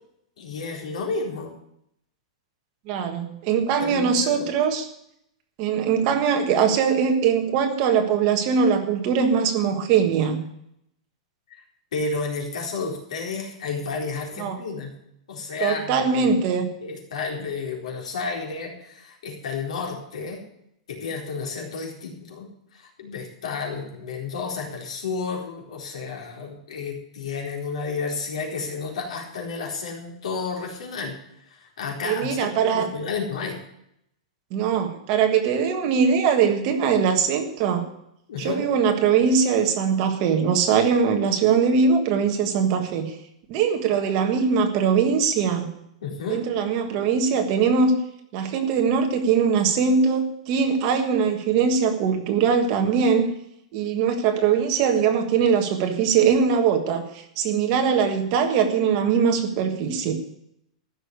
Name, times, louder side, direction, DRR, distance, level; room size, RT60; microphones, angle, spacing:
voice 1, 0.4-1.5 3.8-4.4 11.9-14.9 15.3-16.3 16.8-20.4 20.9-31.2 31.5-33.6 38.3-38.6 46.0-46.4, left 4 dB, 80° left, 0 dB, 4.2 m, -31 dB
voice 2, 2.9-4.8 5.6-10.4 14.4-14.6 15.6-16.7 32.0-32.9 34.5-37.8 38.4-43.1 43.5-45.7 46.3-48.0 48.3-53.3 53.7-60.1, right 6 dB, 30° right, 4 dB, 1.5 m, -21 dB
14.5 x 6.5 x 9.5 m, 0.76 s
supercardioid pair, 180°, 3 cm